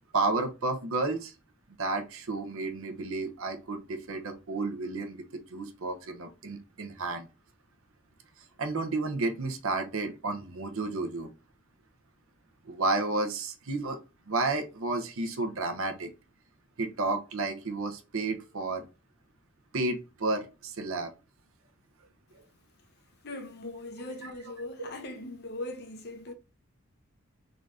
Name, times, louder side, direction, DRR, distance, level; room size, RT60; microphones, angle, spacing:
voice 1, 0.1-1.3 1.8-7.3 8.6-11.3 12.6-14.0 14.3-16.1 16.8-18.8 19.7-21.1 22.3-22.4 24.2-24.3, right 3 dB, 70° right, 0.7 m, -31 dB
voice 2, 23.2-26.3, left 2 dB, 50° left, 0.7 m, -40 dB
3.8 x 2.5 x 3.3 m
head